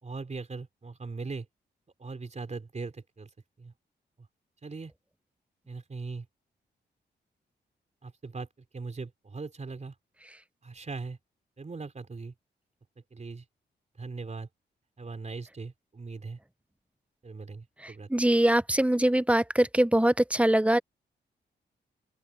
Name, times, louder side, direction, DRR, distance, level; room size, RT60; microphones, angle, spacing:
voice 1, 0.0-1.5 2.0-3.3 3.6-3.7 4.6-4.9 5.7-6.3 8.0-8.5 8.7-9.9 10.6-11.2 11.6-12.3 13.1-13.4 14.0-14.5 15.0-16.4 17.2-18.1, right 4 dB, 40° right, 3.9 m, -39 dB
voice 2, 18.1-20.8, right 1 dB, 5° right, 0.8 m, -23 dB
open air
cardioid pair, 70°, 19 cm